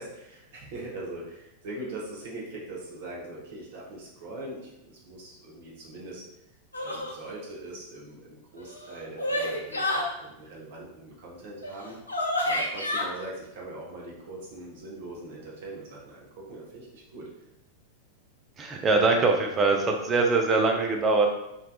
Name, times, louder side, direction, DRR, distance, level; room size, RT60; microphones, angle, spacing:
voice 1, 0.0-6.2 6.8-12.0 12.4-17.3, right 2 dB, 55° right, -3 dB, 0.7 m, -41 dB
sound 1, 6.7-7.2 8.6-10.1 11.6-11.7 12.1-13.0, left 1 dB, 80° left, 0.3 m, -29 dB
voice 2, 18.6-21.3, right 3 dB, 25° right, 2 dB, 0.3 m, -23 dB
2.5 x 2.2 x 2.3 m, 0.86 s
figure-of-eight pair, 90°, 0 cm